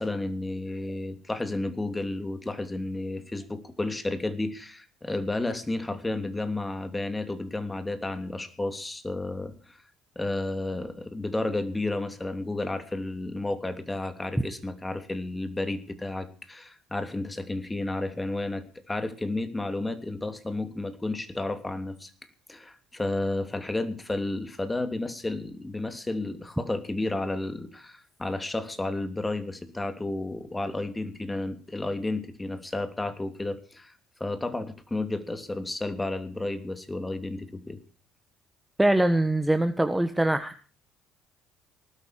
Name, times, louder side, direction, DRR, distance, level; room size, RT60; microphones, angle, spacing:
voice 1, 0.0-9.8 10.1-22.1 22.5-33.9 34.2-37.8, left 2 dB, 15° left, 9 dB, 3.0 m, -32 dB
voice 2, 38.8-40.6, right 1 dB, 10° right, 9 dB, 1.4 m, -23 dB
19.5 x 12.5 x 4.8 m, 0.37 s
hypercardioid pair, 55°, 0 cm